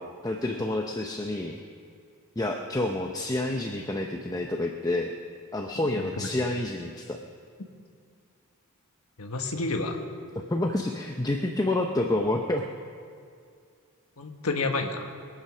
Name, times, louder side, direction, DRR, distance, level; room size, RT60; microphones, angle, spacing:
voice 1, 0.0-1.6 2.4-5.1 5.5-7.2 10.5-12.6, left 2 dB, 15° left, 2 dB, 0.7 m, -28 dB
voice 2, 5.9-6.3 9.2-10.0 14.2-15.1, left 3 dB, 75° left, 3 dB, 1.4 m, -30 dB
22.5 x 8.4 x 6.2 m, 2.3 s
head